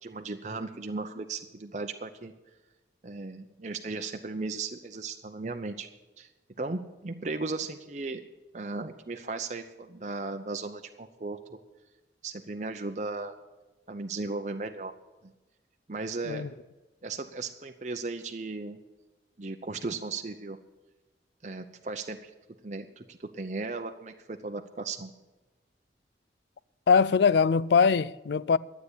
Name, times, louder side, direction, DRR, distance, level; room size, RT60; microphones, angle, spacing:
voice 1, 0.0-2.3 3.0-5.9 6.2-6.3 6.6-8.2 8.5-11.6 12.2-13.3 13.9-14.9 15.9-16.5 17.0-18.8 19.4-20.6 21.4-22.3 22.6-25.1, right 3 dB, 40° right, 0.7 m, -36 dB
voice 2, 26.9-28.6, left 5 dB, 75° left, 0.4 m, -22 dB
12.0 x 8.3 x 8.1 m
head